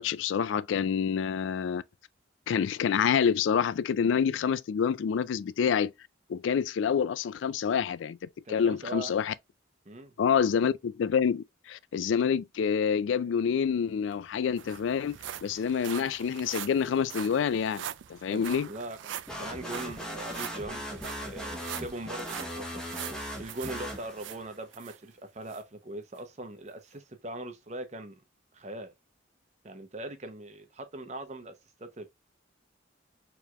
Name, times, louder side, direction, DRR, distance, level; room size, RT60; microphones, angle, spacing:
voice 1, 0.0-1.8 2.5-5.9 6.3-8.2 8.5-9.3 10.2-17.8 18.1-18.7, left 7 dB, 80° left, 0.3 m, -27 dB
voice 2, 8.4-9.1 9.8-10.1 18.3-22.8 23.4-28.1 28.5-28.9 29.6-31.5 31.8-32.1, right 1 dB, 35° right, 0.8 m, -41 dB
sound 1, 13.8-13.9 14.1-25.0 25.5-25.6 26.2-26.3, right 10 dB, 80° right, 0.4 m, -43 dB
sound 2, 19.3-24.5, equal, 5° left, 1.0 m, -39 dB
4.6 x 3.6 x 2.4 m
head